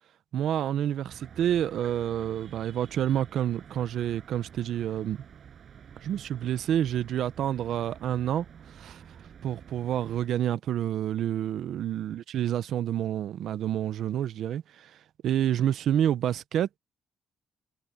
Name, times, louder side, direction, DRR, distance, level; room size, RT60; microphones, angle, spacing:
voice 1, 0.3-5.2 6.0-8.4 8.7-9.0 9.4-15.0 15.2-16.8, right 10 dB, 75° right, 0.8 m, -28 dB
sound 1, 1.1-10.3, right 8 dB, 55° right, 6.1 m, -50 dB
cardioid pair, 90°, 0 cm